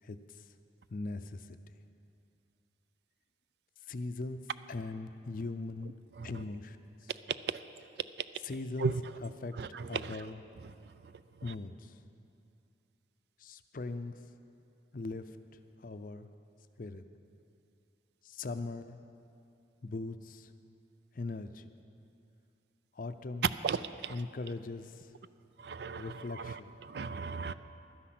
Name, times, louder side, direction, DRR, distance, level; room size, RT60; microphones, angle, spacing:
voice 1, 0.9-1.4 3.9-4.4 4.7-6.0 6.2-6.8 8.4-8.9 9.2-9.6 9.9-10.4 11.4-11.9 13.4-14.2 14.9-15.3 15.8-16.3 16.8-17.0 18.2-19.0 19.8-20.5 21.2-21.7 23.0-23.5 24.1-25.1 26.0-26.7, left 3 dB, 45° left, 10 dB, 0.5 m, -40 dB
voice 2, 9.6-10.2 23.6-24.1 25.6-27.5, right 4 dB, 60° right, 14 dB, 0.4 m, -36 dB
12.0 x 10.0 x 6.0 m, 2.6 s
head